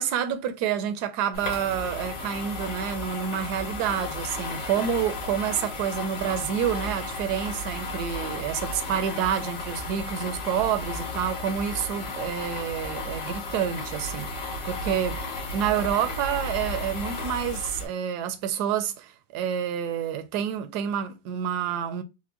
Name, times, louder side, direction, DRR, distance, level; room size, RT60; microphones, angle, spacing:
voice 1, 0.0-15.2 15.5-22.0, right 9 dB, 70° right, 1.0 m, -28 dB
sound 1, 1.3-17.9, left 2 dB, 70° left, 1.9 m, -34 dB
4.5 x 2.1 x 2.8 m
omnidirectional pair, 2.1 m